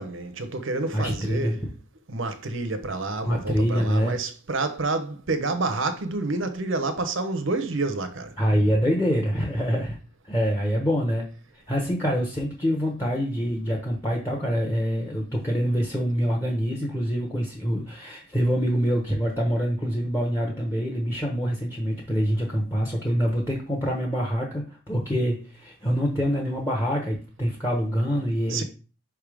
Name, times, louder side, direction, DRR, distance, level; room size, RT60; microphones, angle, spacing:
voice 1, 0.0-1.7 2.1-8.3 28.5-28.6, right 3 dB, 60° right, 0.9 m, -28 dB
voice 2, 0.9-1.6 3.2-4.2 8.4-10.0 10.2-11.3 11.7-28.6, equal, 15° left, 1.0 m, -25 dB
5.5 x 3.6 x 4.9 m
head